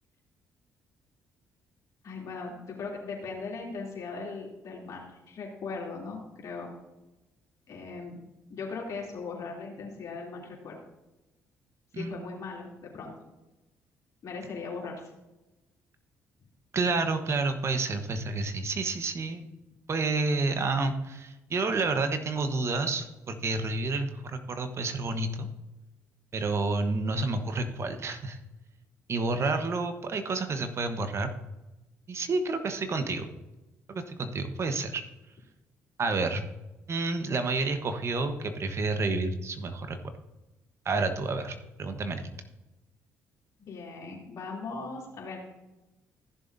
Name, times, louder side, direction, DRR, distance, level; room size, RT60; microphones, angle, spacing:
voice 1, 2.0-6.7 7.7-8.2 8.5-10.8 11.9-13.1 14.2-14.9 43.6-45.4, left 4 dB, 60° left, -2 dB, 3.0 m, -39 dB
voice 2, 16.7-19.5 19.9-25.5 26.3-28.4 29.1-31.3 32.1-33.3 33.9-35.0 36.0-36.4 36.9-40.0 40.8-42.3, right 3 dB, 45° right, 8 dB, 1.1 m, -29 dB
15.0 x 6.9 x 2.7 m, 1.0 s
supercardioid pair, 60°, 6 cm